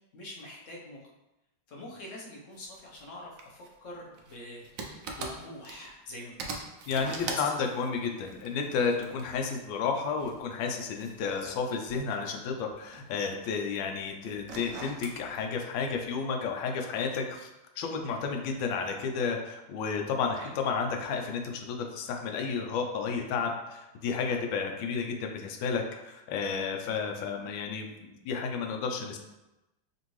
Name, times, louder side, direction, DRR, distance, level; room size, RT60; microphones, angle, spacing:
voice 1, 0.1-1.0 1.7-6.6 7.2-7.5 11.4-11.5 20.3-20.5, left 1 dB, 55° left, -3 dB, 0.9 m, -44 dB
sound 1, 2.5-3.0 3.4-6.1 6.4-9.5 10.2-12.3 12.6-13.8 14.3-15.2, right 4 dB, 90° right, 0.7 m, -42 dB
voice 2, 6.9-17.5 17.8-20.4 20.6-29.2, left 5 dB, 80° left, 3 dB, 1.3 m, -32 dB
5.2 x 2.6 x 3.1 m, 0.99 s
omnidirectional pair, 2.1 m